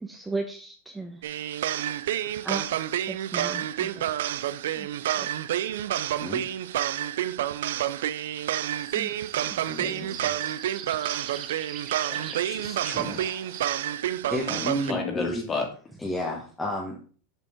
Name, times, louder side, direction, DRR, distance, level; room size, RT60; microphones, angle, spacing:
voice 1, 0.0-1.2 2.4-2.7 3.1-4.1 4.7-4.9 5.1-5.3 8.9-10.1, right 3 dB, 10° right, 3 dB, 0.9 m, -37 dB
sound 1, 1.2-14.9, right 11 dB, 80° right, 0.3 m, -29 dB
sound 2, 8.8-13.8, right 8 dB, 45° right, 0.9 m, -43 dB
voice 2, 9.6-10.3 11.1-11.6 14.3-15.5 16.0-17.0, left 1 dB, 10° left, -2 dB, 1.3 m, -32 dB
voice 3, 12.1-13.6 14.5-15.7, left 4 dB, 25° left, 1 dB, 2.3 m, -33 dB
7.4 x 5.1 x 3.6 m, 0.41 s
supercardioid pair, 120°, 0 cm